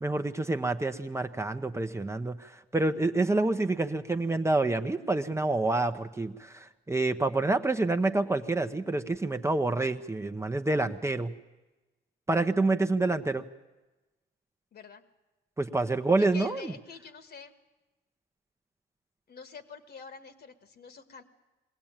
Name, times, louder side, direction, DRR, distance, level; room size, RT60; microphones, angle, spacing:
voice 1, 0.0-11.3 12.3-13.4 15.6-16.7, right 2 dB, 15° right, 7 dB, 0.9 m, -28 dB
voice 2, 14.7-15.0 16.2-17.5 19.3-21.2, left 5 dB, 55° left, 10 dB, 1.7 m, -46 dB
22.0 x 16.5 x 8.9 m, 1.1 s
cardioid pair, 90°, 20 cm